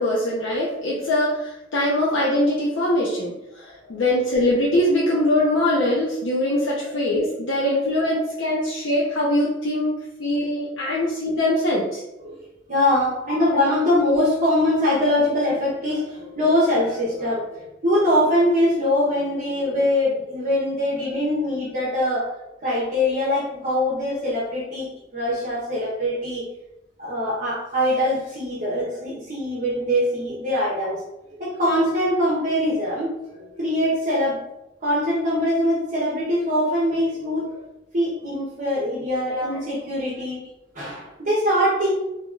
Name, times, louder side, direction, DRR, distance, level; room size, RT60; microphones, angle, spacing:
voice 1, 0.0-12.0 39.3-39.6, left 1 dB, 75° left, -6 dB, 0.7 m, -22 dB
voice 2, 12.7-17.5 17.8-22.3 22.6-26.4 27.0-31.0 31.4-34.4 34.8-37.6 37.9-40.4 40.7-41.9, left 1 dB, 45° right, -6 dB, 0.9 m, -23 dB
2.8 x 2.8 x 3.6 m, 0.92 s
head